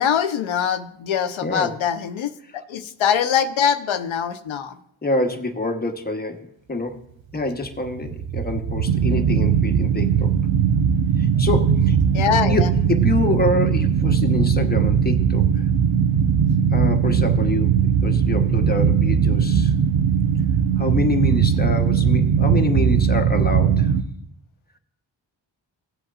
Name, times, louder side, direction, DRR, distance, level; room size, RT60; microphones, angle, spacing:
voice 1, 0.0-4.8 12.1-12.7, left 8 dB, 90° left, 9 dB, 0.8 m, -23 dB
voice 2, 1.4-1.7 5.0-7.0 7.3-10.3 11.2-12.0 12.4-15.7 16.7-19.7 20.8-24.0, left 2 dB, 20° left, 4 dB, 1.0 m, -26 dB
sound 1, 7.6-24.0, right 7 dB, 80° right, 0.8 m, -19 dB
17.0 x 7.8 x 2.4 m, 0.69 s
cardioid pair, 75°, 46 cm